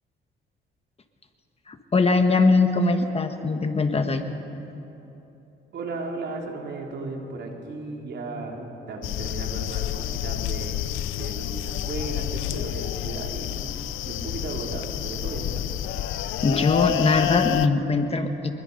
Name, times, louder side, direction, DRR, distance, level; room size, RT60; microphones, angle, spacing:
voice 1, 1.7-4.2 16.4-18.5, left 3 dB, 30° left, 6 dB, 1.5 m, -21 dB
voice 2, 5.7-10.9 11.2-13.7 14.1-15.8, right 3 dB, 60° right, 0 dB, 3.6 m, -35 dB
sound 1, 9.0-17.7, left 12 dB, 85° left, 0.7 m, -29 dB
25.0 x 21.5 x 5.5 m, 3.0 s
cardioid pair, 90°, 20 cm